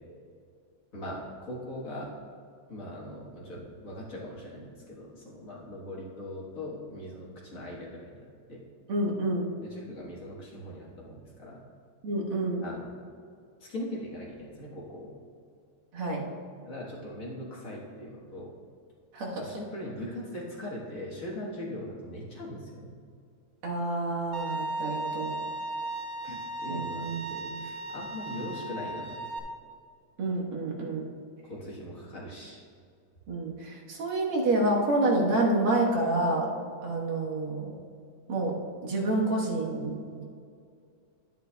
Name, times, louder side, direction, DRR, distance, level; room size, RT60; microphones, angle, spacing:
voice 1, 0.9-2.1 2.7-8.6 9.6-11.6 12.6-12.9 13.6-15.1 16.7-18.6 19.4-22.9 26.2-29.2 31.5-32.6, left 1 dB, 45° left, -5 dB, 1.7 m, -40 dB
voice 2, 8.9-9.5 12.0-12.7 15.9-16.3 19.1-19.5 23.6-25.4 26.7-27.2 27.4-27.6 30.2-31.1 33.3-36.5 36.8-37.7 38.3-40.2, right 2 dB, 85° right, -2 dB, 2.3 m, -28 dB
Bowed string instrument, 24.3-29.4, right 2 dB, 65° right, 1.4 m, -36 dB
11.5 x 9.5 x 2.3 m, 2.3 s
omnidirectional pair, 2.3 m